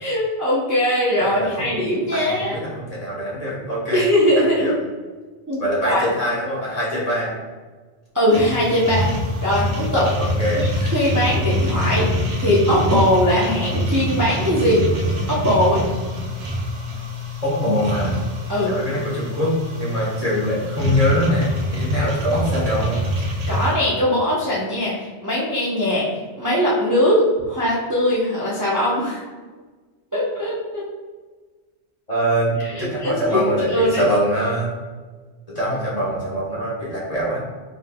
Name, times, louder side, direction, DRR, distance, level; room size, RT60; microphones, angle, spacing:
voice 1, 0.0-2.6 3.9-4.7 5.5-6.0 8.1-9.1 9.4-10.1 10.6-12.1 12.4-14.9 15.3-15.8 18.5-18.7 23.5-26.1 26.4-29.2 30.1-30.8 32.6-34.0, equal, 20° right, -7 dB, 0.6 m, -20 dB
voice 2, 1.2-1.7 2.1-4.1 4.4-4.8 5.6-7.3 10.2-10.7 17.4-18.2 18.6-23.0 32.1-34.7 35.5-37.4, equal, 35° left, -6 dB, 1.2 m, -23 dB
sound 1, 8.3-23.7, equal, 75° right, 1.1 m, -25 dB
5.3 x 3.4 x 2.2 m, 1.4 s
omnidirectional pair, 1.2 m